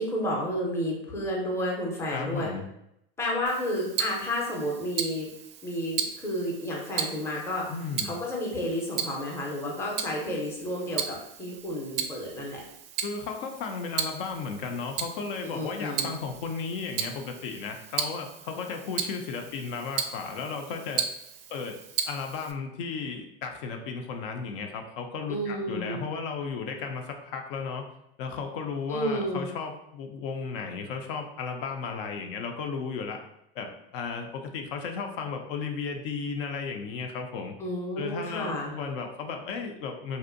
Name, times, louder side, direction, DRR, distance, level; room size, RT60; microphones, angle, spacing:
voice 1, 0.0-2.5 3.2-5.3 5.6-7.7 8.0-12.6 15.5-16.1 25.3-26.0 28.9-29.5 37.6-38.7, equal, 10° left, -3 dB, 0.5 m, -31 dB
voice 2, 2.1-2.7 7.7-8.1 13.0-21.1 21.5-21.8 22.0-27.9 28.2-33.2 33.5-37.5 38.0-40.2, left 5 dB, 60° left, 4 dB, 0.4 m, -34 dB
Tick-tock, 3.5-22.5, right 8 dB, 70° right, 0.4 m, -36 dB
2.6 x 2.0 x 2.5 m, 0.78 s
supercardioid pair, 125°, 30 cm